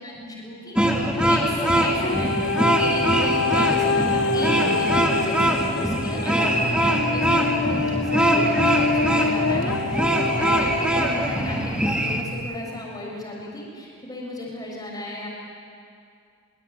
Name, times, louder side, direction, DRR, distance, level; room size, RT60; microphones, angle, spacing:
voice 1, 0.0-2.4 2.8-15.3, left 1 dB, 15° left, -2 dB, 6.5 m, -35 dB
sound 1, 0.8-12.2, equal, 5° right, 1.9 m, -22 dB
sound 2, 2.0-11.1 11.8-11.9, left 3 dB, 55° left, 0.9 m, -26 dB
24.5 x 24.0 x 9.3 m, 2.4 s
head